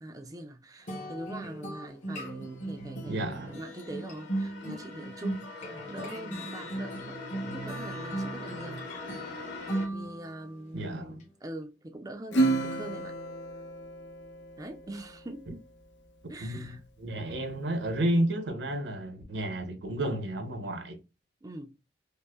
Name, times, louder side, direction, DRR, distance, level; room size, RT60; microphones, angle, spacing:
voice 1, 0.0-9.5 9.9-13.1 14.6-15.6 16.3-16.8 21.4-21.7, right 1 dB, 20° right, 0.4 m, -43 dB
sound 1, 0.9-10.5, right 1 dB, 45° left, 1.0 m, -38 dB
sound 2, 2.1-9.9, left 3 dB, 65° left, 2.1 m, -43 dB
voice 2, 3.1-3.5 10.7-11.2 16.4-21.0, right 1 dB, 75° right, 0.9 m, -31 dB
Acoustic guitar / Strum, 12.3-15.2, right 2 dB, 85° left, 0.9 m, -30 dB
5.3 x 2.1 x 2.2 m
head